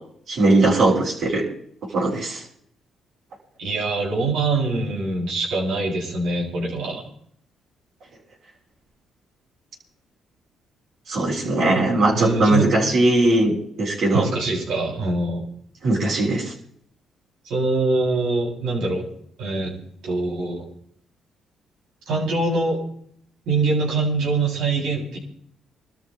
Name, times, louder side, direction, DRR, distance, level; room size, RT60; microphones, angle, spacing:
voice 1, 0.3-1.5 1.9-2.4 11.1-14.2 15.8-16.5, right 2 dB, 60° right, -3 dB, 7.5 m, -19 dB
voice 2, 3.6-7.0 11.6-11.9 12.1-12.7 14.1-15.5 17.4-19.1 19.4-19.7 20.0-20.7 22.1-22.8 23.5-25.2, right 3 dB, 80° right, -3 dB, 7.9 m, -24 dB
26.0 x 13.5 x 3.4 m, 0.65 s
cardioid pair, 90°, 0 cm